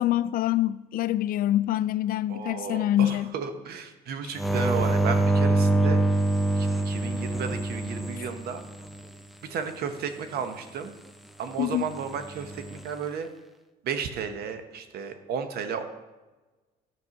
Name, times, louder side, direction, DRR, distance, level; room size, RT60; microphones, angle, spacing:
voice 1, 0.0-3.3 11.6-11.8, left 13 dB, 60° left, 0.4 m, -25 dB
voice 2, 2.3-6.0 6.5-8.6 9.5-10.9 11.4-13.3 13.8-15.8, right 6 dB, 65° right, 1.0 m, -33 dB
sound 1, 4.4-9.0 12.3-12.8, right 2 dB, ahead, 0.5 m, -25 dB
11.0 x 4.6 x 5.9 m
cardioid pair, 110°, 17 cm